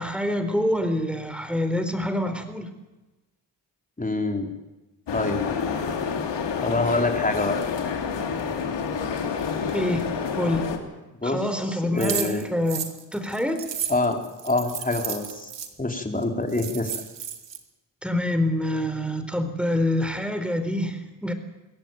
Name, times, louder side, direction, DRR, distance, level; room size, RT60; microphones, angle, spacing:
voice 1, 0.0-2.7 9.7-10.0 10.4-10.7 11.2-13.6 18.0-21.3, left 1 dB, ahead, 8 dB, 4.1 m, -26 dB
voice 2, 4.0-4.5 5.1-5.4 6.6-7.6 11.2-11.4 11.9-12.4 13.9-14.2 14.4-15.5 15.8-16.9, left 2 dB, 20° left, 3 dB, 4.0 m, -25 dB
sound 1, 5.1-10.8, left 6 dB, 70° left, 3.2 m, -28 dB
Keys noises, 12.0-15.7 16.2-16.3 16.5-17.6, right 8 dB, 70° right, 2.6 m, -33 dB
22.5 x 17.0 x 9.3 m, 1.1 s
cardioid pair, 70°, 44 cm